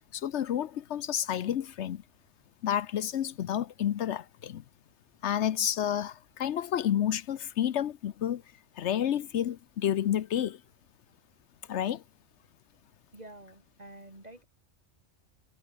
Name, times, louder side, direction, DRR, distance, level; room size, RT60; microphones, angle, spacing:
voice 1, 0.1-2.0 2.6-4.6 5.2-8.4 8.8-10.6 11.7-12.0, left 10 dB, 75° left, 1.0 m, -30 dB
voice 2, 13.1-14.4, right 1 dB, 35° right, 4.4 m, -48 dB
omnidirectional pair, 1.2 m